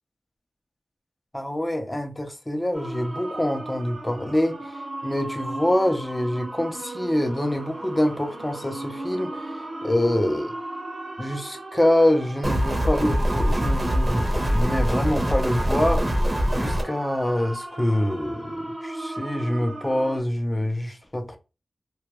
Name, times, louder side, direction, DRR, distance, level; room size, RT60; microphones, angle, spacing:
voice 1, 1.3-4.8 5.0-10.5 11.2-16.1 16.5-21.4, left 1 dB, 20° left, 0.5 m, -25 dB
sound 1, 2.7-20.2, right 2 dB, 80° right, 0.8 m, -36 dB
sound 2, 12.4-16.8, equal, 30° right, 0.7 m, -23 dB
2.2 x 2.2 x 3.0 m
wide cardioid pair, 75°, 0 cm